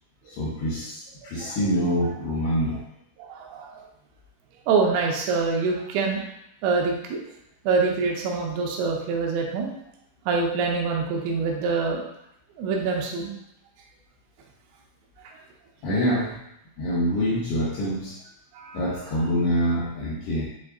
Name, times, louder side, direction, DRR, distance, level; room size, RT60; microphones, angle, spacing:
voice 1, 0.3-2.8 15.8-16.3 16.8-18.2 18.7-20.5, equal, 80° left, -5 dB, 2.4 m, -25 dB
voice 2, 3.2-3.8 4.7-6.2 6.6-7.2 7.7-9.7 10.3-12.0 12.6-13.3 18.5-18.8, right 4 dB, 85° right, 0 dB, 3.0 m, -25 dB
7.1 x 2.5 x 2.5 m, 0.80 s
omnidirectional pair, 5.5 m